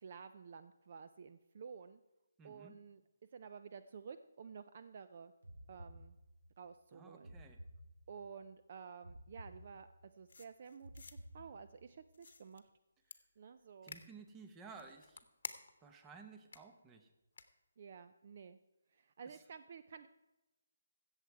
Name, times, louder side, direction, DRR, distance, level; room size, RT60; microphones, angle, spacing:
voice 1, 0.0-2.0 2.4-3.0 3.3-5.3 5.7-6.2 6.6-7.4 8.1-9.9 10.2-12.7 13.4-14.0 17.8-18.6 18.9-20.1, right 6 dB, 40° right, 10 dB, 0.4 m, -52 dB
voice 2, 2.4-2.8 6.9-7.6 13.8-15.2 15.8-17.1 19.2-19.4, right 5 dB, 10° right, 6 dB, 0.7 m, -55 dB
sound 1, 5.4-6.6 7.2-8.4 9.0-10.2 10.8-12.0, equal, 75° right, 2.9 m, -55 dB
sound 2, 10.3-11.1 12.1-12.6 13.1-13.2 13.9-14.0 14.7-15.9 16.5-16.6 17.3-17.4, left 4 dB, 60° left, 0.9 m, -50 dB
16.0 x 7.2 x 4.7 m, 1.0 s
hypercardioid pair, 170°, 0 cm